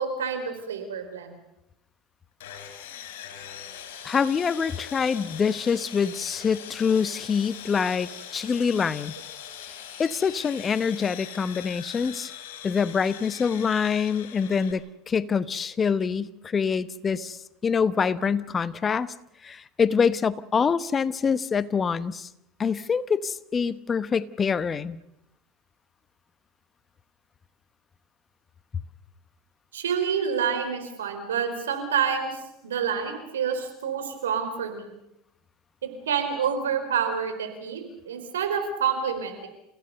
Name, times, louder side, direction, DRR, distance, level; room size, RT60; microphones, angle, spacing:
voice 1, 0.0-1.3 29.7-34.9 35.8-39.5, right 7 dB, 85° right, 7 dB, 4.5 m, -28 dB
Sawing, 2.4-14.7, left 9 dB, 75° left, 4.6 m, -41 dB
voice 2, 4.0-9.1 10.0-12.3 12.6-19.1 19.4-22.3 22.6-25.0, left 6 dB, 30° left, 16 dB, 1.0 m, -25 dB
29.0 x 17.0 x 6.8 m, 0.87 s
hypercardioid pair, 80°, 0 cm